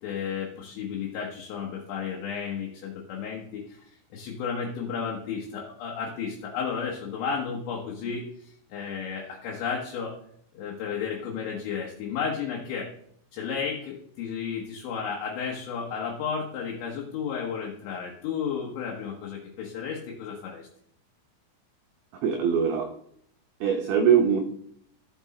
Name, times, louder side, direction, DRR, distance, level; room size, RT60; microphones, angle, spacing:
voice 1, 0.0-3.8 4.1-10.1 10.5-12.9 13.3-20.7, left 6 dB, 75° left, -1 dB, 3.3 m, -33 dB
voice 2, 22.2-22.9 23.6-24.4, right 7 dB, 85° right, 3 dB, 2.2 m, -22 dB
13.0 x 6.1 x 4.2 m, 0.68 s
omnidirectional pair, 5.7 m